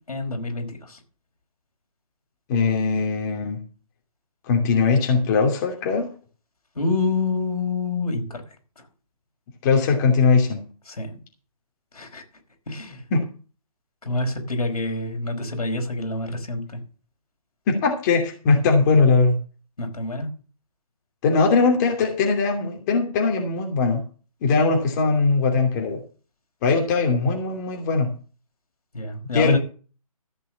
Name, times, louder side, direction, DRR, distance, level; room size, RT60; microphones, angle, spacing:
voice 1, 0.1-1.0 6.7-8.4 10.9-11.2 11.9-12.2 12.7-13.0 14.0-16.8 19.8-20.3 28.9-29.6, left 3 dB, 80° left, 3 dB, 4.9 m, -27 dB
voice 2, 2.5-3.6 4.5-6.1 9.6-10.6 13.1-13.2 17.7-19.4 21.2-24.0 24.4-26.0 26.6-28.1 29.3-29.6, left 4 dB, 30° left, 2 dB, 2.8 m, -20 dB
14.5 x 6.0 x 7.5 m, 0.38 s
figure-of-eight pair, 150°, 19 cm